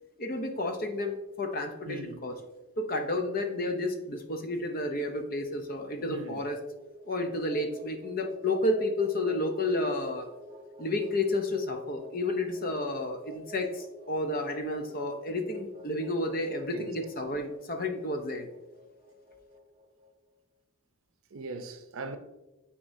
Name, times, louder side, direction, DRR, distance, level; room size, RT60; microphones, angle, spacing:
voice 1, 0.2-2.4 2.8-6.6 7.1-10.3 10.8-18.5, left 2 dB, 40° left, 0.6 m, -31 dB
voice 2, 1.9-2.2 6.1-6.4 16.7-16.9 21.3-22.2, right 2 dB, 75° right, 0.6 m, -39 dB
sound 1, 6.0-20.1, right 1 dB, 25° right, 0.7 m, -50 dB
8.9 x 4.2 x 2.7 m
head